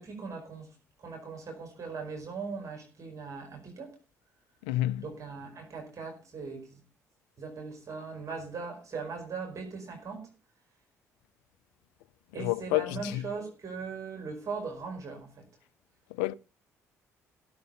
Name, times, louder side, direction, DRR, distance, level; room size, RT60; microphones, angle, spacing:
voice 1, 0.0-4.0 5.0-6.8 7.4-10.3 12.3-15.4, right 4 dB, 40° right, 4.7 m, -39 dB
voice 2, 4.7-5.0 12.4-13.2 16.2-16.3, left 17 dB, 75° left, 0.5 m, -29 dB
16.5 x 6.8 x 5.4 m
figure-of-eight pair, 45°, 8 cm